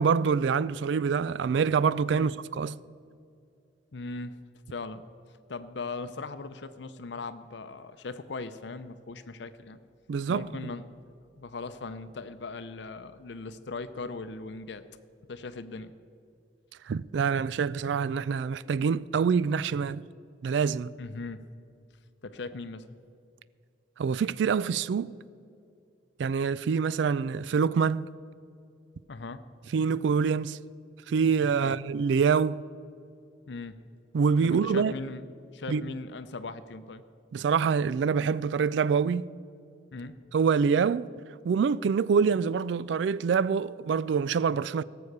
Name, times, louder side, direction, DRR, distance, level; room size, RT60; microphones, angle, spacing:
voice 1, 0.0-2.8 10.1-10.5 16.9-20.0 20.4-20.9 24.0-25.1 26.2-28.1 29.7-30.6 31.1-32.6 34.1-34.9 35.7-35.8 37.3-39.3 40.3-41.1 41.4-44.8, right 6 dB, 75° right, 0.3 m, -25 dB
voice 2, 3.9-4.4 4.7-5.0 5.5-9.8 10.3-10.9 11.4-14.8 15.3-15.9 21.0-21.4 22.2-22.9 29.1-29.4 31.5-31.8 33.5-33.8 34.4-35.3 35.5-37.0 39.9-40.1, left 3 dB, 70° left, 0.6 m, -39 dB
17.5 x 7.0 x 6.6 m
head